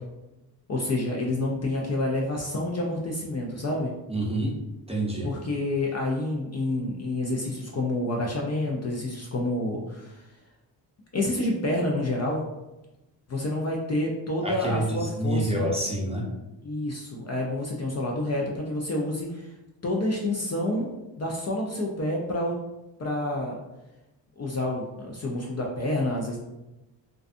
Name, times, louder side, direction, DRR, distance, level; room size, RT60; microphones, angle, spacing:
voice 1, 0.7-3.9 5.2-10.2 11.1-12.4 13.3-15.7 16.6-19.5 19.8-22.6 23.0-23.6 24.4-26.4, left 1 dB, 35° left, -1 dB, 0.4 m, -28 dB
voice 2, 4.1-4.5 4.9-5.3 14.4-16.2, right 1 dB, 15° right, -3 dB, 0.6 m, -27 dB
2.5 x 2.3 x 2.4 m, 1.0 s
cardioid pair, 70°, 45 cm